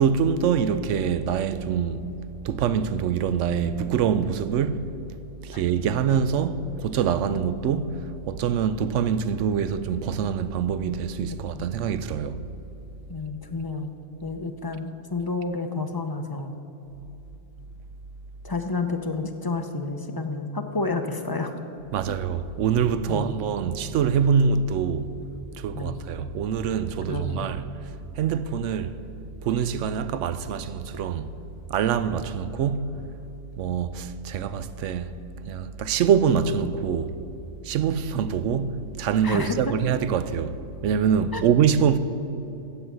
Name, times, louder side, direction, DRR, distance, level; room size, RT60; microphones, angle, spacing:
voice 1, 0.0-2.1 2.4-4.8 5.4-12.4 21.9-25.1 25.6-27.7 28.2-29.0 29.4-31.3 31.7-33.0 33.6-35.1 35.5-37.2 37.6-40.6 40.8-42.0, right 7 dB, 75° right, 0.9 m, -24 dB
voice 2, 13.1-13.9 14.2-16.6 18.4-21.6 22.1-22.2 23.1-23.4 25.7-26.0 27.1-27.6 39.2-39.7 41.3-41.4, left 3 dB, 25° left, 0.5 m, -30 dB
15.5 x 5.6 x 8.1 m
omnidirectional pair, 1.3 m